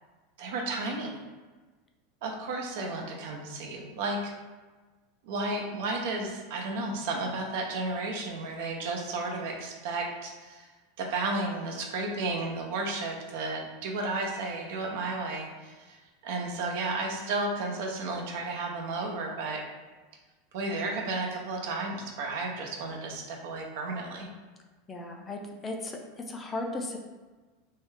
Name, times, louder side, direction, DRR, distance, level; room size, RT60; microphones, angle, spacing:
voice 1, 0.4-1.1 2.2-4.3 5.2-10.7 11.0-16.0 16.2-19.6 20.5-24.3, right 2 dB, 65° right, 1 dB, 0.6 m, -33 dB
voice 2, 24.9-26.0 26.3-27.0, left 2 dB, 20° left, 2 dB, 0.3 m, -36 dB
3.2 x 2.3 x 3.2 m, 1.3 s
supercardioid pair, 150°, 0 cm